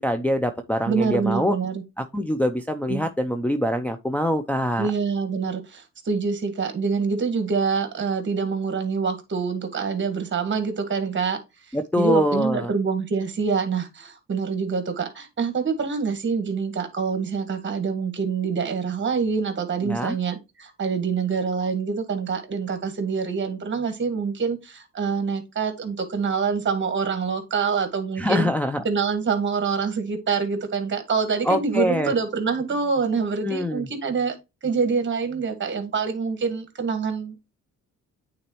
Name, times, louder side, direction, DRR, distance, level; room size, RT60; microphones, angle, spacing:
voice 1, 0.0-1.6 2.0-4.9 11.7-12.7 19.8-20.2 28.2-28.8 31.4-32.1 33.4-33.9, equal, 5° left, 0.5 m, -24 dB
voice 2, 0.9-1.8 2.9-3.0 4.8-11.4 12.0-28.5 28.8-34.3 34.6-37.3, right 5 dB, 40° right, 1.7 m, -26 dB
8.7 x 4.1 x 3.0 m
cardioid pair, 90°, 30 cm